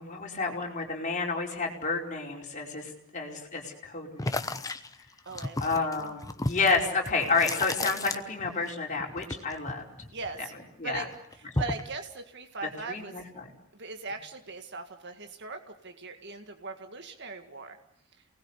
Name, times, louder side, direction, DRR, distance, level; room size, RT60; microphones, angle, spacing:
voice 1, 0.0-4.6 5.6-9.8 10.8-11.1 12.9-13.5, left 4 dB, 35° left, 1 dB, 4.8 m, -30 dB
sound 1, 4.2-8.7 9.0-10.6 10.9-11.9, left 2 dB, 15° left, 1.1 m, -34 dB
voice 2, 5.3-5.9 10.1-10.5 10.8-11.1 11.6-13.1 13.7-17.8, right 4 dB, 55° right, 6 dB, 2.0 m, -39 dB
28.5 x 20.0 x 8.2 m, 0.74 s
head